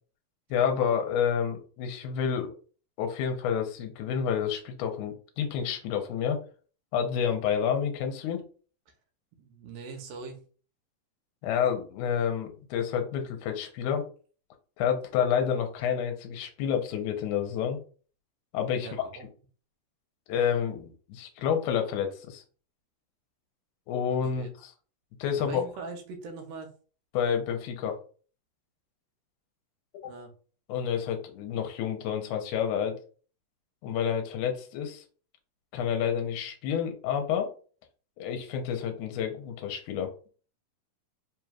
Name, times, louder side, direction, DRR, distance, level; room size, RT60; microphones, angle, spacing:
voice 1, 0.5-2.5 3.0-6.4 6.9-8.4 11.4-14.0 14.8-17.8 18.5-19.1 20.3-22.4 23.9-24.7 25.2-25.6 27.1-28.0 30.0-30.1 30.7-33.0 33.8-35.0 35.7-37.5 38.2-40.1, left 8 dB, 75° left, 4 dB, 2.0 m, -29 dB
voice 2, 9.3-10.4 18.8-19.3 24.1-24.5 25.4-26.7 30.0-30.3, right 4 dB, 80° right, 4 dB, 2.3 m, -42 dB
5.0 x 3.0 x 2.3 m, 0.40 s
omnidirectional pair, 3.9 m